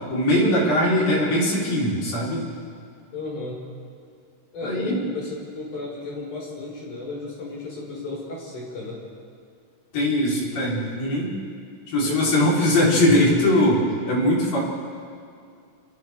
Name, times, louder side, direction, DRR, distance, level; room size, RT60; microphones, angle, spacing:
voice 1, 0.1-2.4 4.6-5.0 9.9-11.3 11.9-14.6, left 1 dB, 85° left, -5 dB, 6.0 m, -21 dB
voice 2, 3.1-3.6 4.5-9.0 12.0-12.5, left 3 dB, 70° left, -4 dB, 7.1 m, -33 dB
30.0 x 25.5 x 3.7 m, 2.4 s
omnidirectional pair, 3.8 m